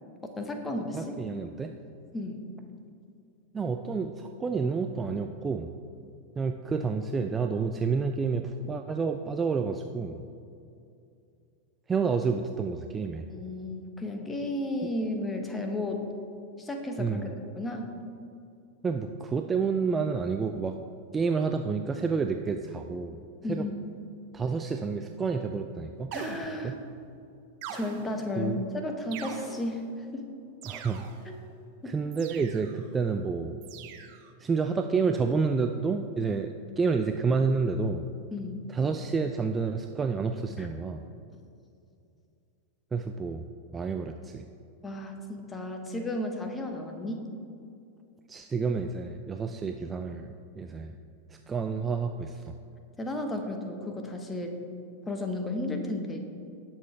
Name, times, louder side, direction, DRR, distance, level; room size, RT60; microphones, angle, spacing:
voice 1, 0.4-1.1 2.1-2.4 13.3-16.1 16.6-17.9 23.4-24.0 26.1-26.7 27.7-30.3 31.2-31.3 31.8-31.9 38.3-38.7 40.6-40.7 44.8-47.2 53.0-54.5 55.1-56.2, left 1 dB, 10° left, 4 dB, 1.3 m, -33 dB
voice 2, 0.9-1.7 3.5-5.7 6.4-10.2 11.9-13.2 14.8-14.9 17.0-17.3 18.8-20.8 21.1-23.2 23.5-23.7 24.3-26.1 26.6-26.8 28.4-28.6 30.7-31.1 31.8-33.6 34.4-38.1 38.7-41.1 42.9-43.4 43.7-44.4 48.3-51.0 51.3-52.5, right 5 dB, 15° right, 6 dB, 0.4 m, -29 dB
sound 1, 26.1-26.9 27.6-28.4 29.1-29.9 30.6-31.4 32.1-32.9 33.6-34.3, right 7 dB, 45° right, 0.9 m, -42 dB
18.5 x 7.2 x 3.3 m, 2.5 s
figure-of-eight pair, 90°, 0 cm